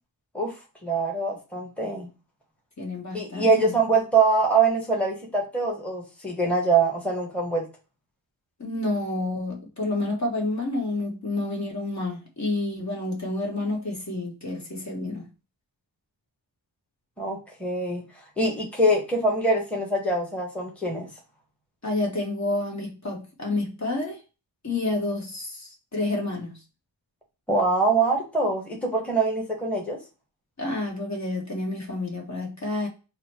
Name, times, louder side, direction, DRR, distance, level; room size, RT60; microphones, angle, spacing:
voice 1, 0.8-2.1 3.1-7.7 17.2-18.0 18.4-21.1 27.5-30.0, right 3 dB, 5° left, 1.1 m, -24 dB
voice 2, 2.8-3.7 8.6-15.3 21.8-24.2 24.6-26.6 30.6-32.9, left 2 dB, 40° left, 1.3 m, -29 dB
3.9 x 2.1 x 4.2 m
wide cardioid pair, 75°, 44 cm